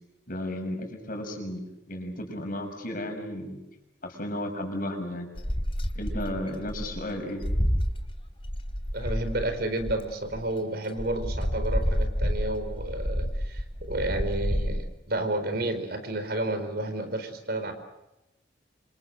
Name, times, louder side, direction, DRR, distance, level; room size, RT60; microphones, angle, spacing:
voice 1, 0.3-3.6 4.0-5.3 5.9-7.4, left 1 dB, 50° left, 4 dB, 6.6 m, -34 dB
sound 1, 5.4-10.4 11.0-14.8, equal, 30° left, 2.9 m, -29 dB
voice 2, 8.9-17.7, right 1 dB, 55° right, 8 dB, 4.5 m, -31 dB
28.0 x 27.0 x 6.7 m, 0.95 s
head